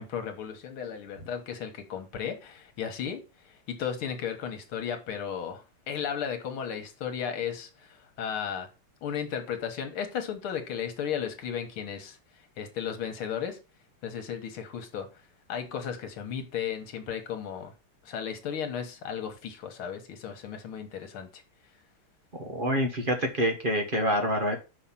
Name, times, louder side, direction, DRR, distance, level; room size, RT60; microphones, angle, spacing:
voice 1, 0.0-3.2 3.5-8.7 9.0-12.2 12.6-13.6 14.0-15.1 15.5-17.7 18.0-21.4, left 8 dB, 70° left, 2.2 m, -35 dB
voice 2, 22.3-24.6, equal, 30° right, 1.0 m, -27 dB
5.8 x 5.6 x 5.7 m
omnidirectional pair, 2.4 m